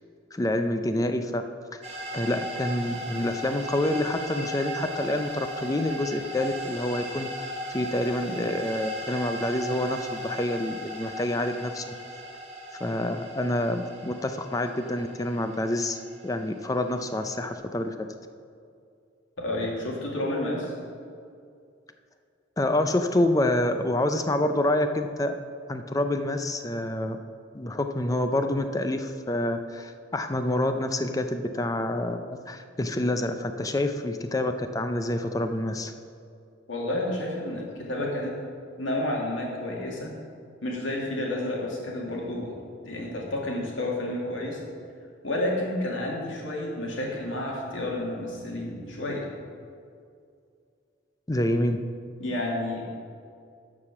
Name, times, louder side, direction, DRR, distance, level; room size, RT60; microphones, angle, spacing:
voice 1, 0.3-1.4 1.7-1.8 2.1-7.3 7.7-11.9 12.8-17.9 22.6-25.3 25.7-27.2 27.5-35.9 51.3-51.8, left 1 dB, 20° left, 8 dB, 0.5 m, -27 dB
sound 1, 1.8-17.5, equal, 35° right, 1.3 m, -37 dB
voice 2, 19.4-20.7 36.7-38.3 38.8-40.1 40.6-42.5 42.8-44.6 45.2-49.3 52.2-52.8, left 1 dB, 90° left, -2 dB, 2.3 m, -30 dB
12.5 x 4.9 x 5.9 m, 2.3 s
head